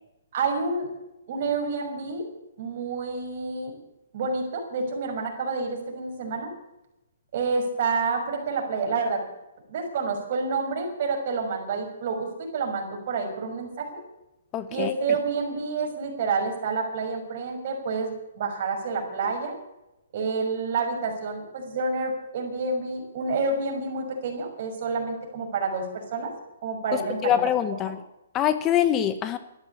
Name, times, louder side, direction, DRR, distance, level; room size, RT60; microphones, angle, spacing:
voice 1, 0.3-0.9 1.3-2.3 2.6-3.7 4.1-6.5 7.3-9.3 9.7-14.0 14.7-19.5 20.1-26.3 26.6-27.4 27.7-27.9, right 4 dB, 45° right, 2 dB, 6.1 m, -28 dB
voice 2, 14.5-14.9 26.9-28.0 28.3-29.4, left 11 dB, 20° left, 12 dB, 0.9 m, -24 dB
13.5 x 12.0 x 8.6 m, 0.93 s
hypercardioid pair, 150°, 0 cm